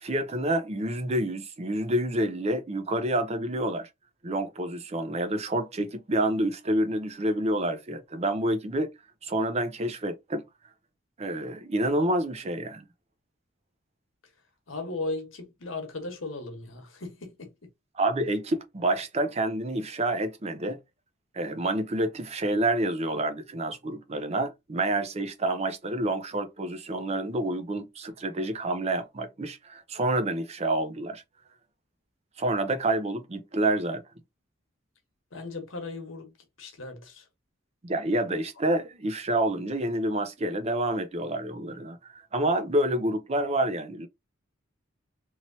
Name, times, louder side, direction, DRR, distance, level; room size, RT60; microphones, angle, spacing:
voice 1, 0.0-3.9 4.2-8.9 9.2-10.4 11.2-12.8 17.9-20.8 21.3-31.2 32.4-34.0 37.8-44.1, right 1 dB, 30° right, 0.6 m, -28 dB
voice 2, 14.7-17.5 35.3-37.2, left 2 dB, 75° left, 1.1 m, -37 dB
3.0 x 2.9 x 2.7 m
head